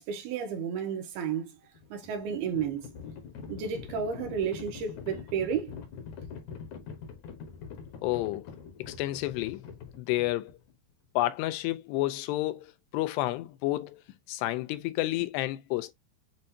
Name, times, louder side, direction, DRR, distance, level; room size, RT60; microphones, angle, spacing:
voice 1, 0.0-1.5 1.9-2.8 3.5-5.7, right 7 dB, 75° right, 2.6 m, -32 dB
Livestock farm animals working animals, 1.6-10.7, left 6 dB, 70° left, 1.8 m, -44 dB
voice 2, 8.0-8.5 8.8-9.7 10.0-10.5 11.2-14.0 14.3-15.9, left 17 dB, 90° left, 2.7 m, -30 dB
7.6 x 2.5 x 2.7 m
omnidirectional pair, 4.7 m